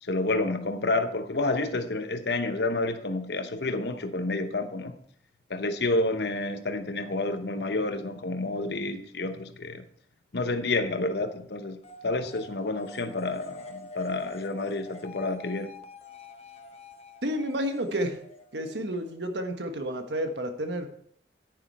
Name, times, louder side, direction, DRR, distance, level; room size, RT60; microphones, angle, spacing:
voice 1, 0.0-5.0 5.5-9.8 10.3-15.7, left 2 dB, 65° left, 0.9 m, -29 dB
sound 1, 11.8-19.3, left 3 dB, 35° left, 0.9 m, -46 dB
voice 2, 17.2-18.2 18.5-20.9, equal, 75° right, 1.4 m, -30 dB
10.0 x 9.7 x 4.2 m
head